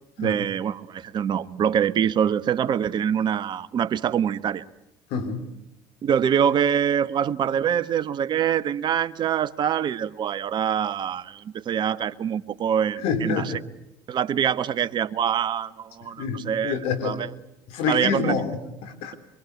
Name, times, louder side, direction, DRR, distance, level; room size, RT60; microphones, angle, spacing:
voice 1, 0.2-4.6 6.0-13.5 14.1-16.8 17.0-17.3 17.9-18.3, right 8 dB, 45° right, 1.3 m, -24 dB
voice 2, 5.1-5.4 13.0-13.6 16.2-17.3 17.7-19.1, left 5 dB, 70° left, 3.8 m, -27 dB
24.5 x 24.0 x 8.3 m
supercardioid pair, 85°, 10 cm